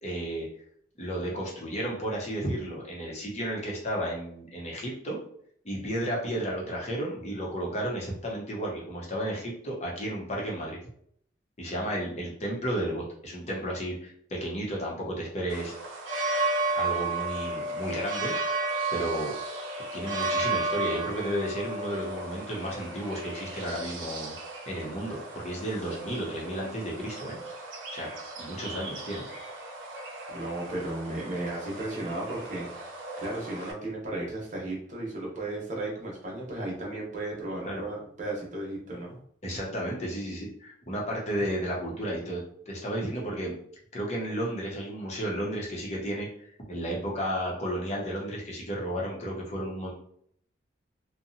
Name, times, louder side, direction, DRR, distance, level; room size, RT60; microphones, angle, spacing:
voice 1, 0.0-0.5 1.0-5.2 5.6-10.8 11.6-15.7 16.7-18.3 18.9-19.6 19.9-24.3 24.7-27.4 27.9-28.1 28.4-29.2 37.7-37.8 39.4-43.6 43.9-46.3 46.7-49.9, right 1 dB, 35° left, -3 dB, 0.8 m, -33 dB
sound 1, 15.5-33.7, right 2 dB, 85° right, 0.5 m, -34 dB
voice 2, 30.3-39.2, right 2 dB, 40° right, -3 dB, 0.9 m, -35 dB
2.7 x 2.2 x 2.6 m, 0.64 s
head